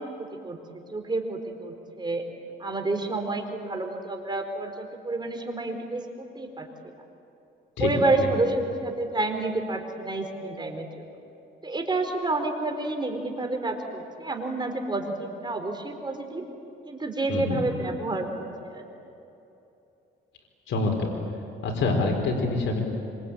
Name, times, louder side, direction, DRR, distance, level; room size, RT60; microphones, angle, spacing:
voice 1, 0.2-0.6 0.9-2.2 2.6-6.7 7.8-10.9 11.6-16.4 16.9-18.8, right 2 dB, 20° right, 4 dB, 4.6 m, -29 dB
voice 2, 17.3-17.6 20.7-21.1 21.6-22.8, left 3 dB, 75° left, 2 dB, 4.4 m, -26 dB
26.5 x 25.0 x 9.0 m, 2.9 s
cardioid pair, 90°, 20 cm